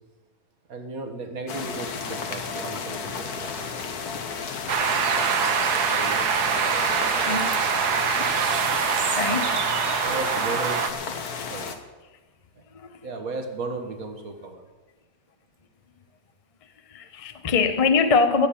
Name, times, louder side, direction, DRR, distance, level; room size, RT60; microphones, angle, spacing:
voice 1, 0.7-3.8 5.2-5.4 5.7-7.4 10.0-11.8 12.5-14.7, right 3 dB, 65° right, 2.0 m, -36 dB
sound 1, 1.5-11.8, left 5 dB, 75° left, 1.7 m, -33 dB
sound 2, 4.7-10.9, right 6 dB, 85° right, 1.6 m, -24 dB
voice 2, 7.2-7.6 8.8-9.6 12.7-13.1 16.9-18.5, left 4 dB, 30° left, 0.6 m, -24 dB
16.0 x 7.4 x 8.6 m
omnidirectional pair, 1.7 m